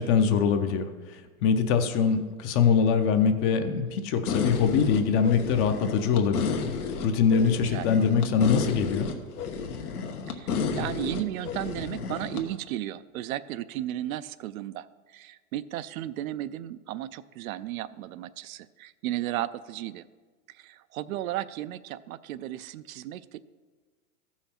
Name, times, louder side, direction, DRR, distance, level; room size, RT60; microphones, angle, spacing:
voice 1, 0.0-6.5 7.0-9.1, left 6 dB, 30° left, 8 dB, 0.6 m, -23 dB
sound 1, 4.3-12.4, left 5 dB, 85° left, 1.3 m, -31 dB
voice 2, 10.3-20.0 20.5-23.4, right 13 dB, 70° right, 15 dB, 0.5 m, -34 dB
14.0 x 5.7 x 4.3 m, 1.4 s
supercardioid pair, 135°, 44 cm